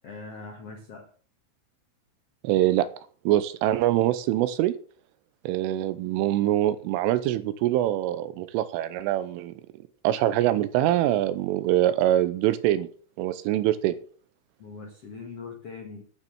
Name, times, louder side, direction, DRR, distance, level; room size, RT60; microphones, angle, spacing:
voice 1, 0.0-1.1 14.6-16.0, left 4 dB, 90° left, 2 dB, 1.3 m, -41 dB
voice 2, 2.4-2.9 3.3-4.7 5.4-9.5 10.0-12.9 13.2-14.0, right 13 dB, 85° right, 13 dB, 3.3 m, -24 dB
11.5 x 7.6 x 6.6 m, 0.43 s
omnidirectional pair, 5.8 m